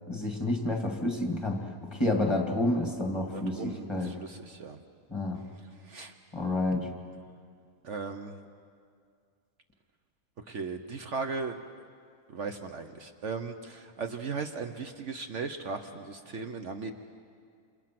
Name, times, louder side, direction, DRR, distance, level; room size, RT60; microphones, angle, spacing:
voice 1, 0.1-1.6 1.9-4.2 5.1-5.4 6.3-6.9, left 2 dB, 20° left, 2 dB, 2.3 m, -29 dB
voice 2, 3.3-4.8 5.8-6.1 7.8-8.3 10.5-11.6 12.3-16.9, right 4 dB, 60° right, 6 dB, 1.2 m, -37 dB
28.5 x 27.0 x 6.0 m, 2.2 s
omnidirectional pair, 1.5 m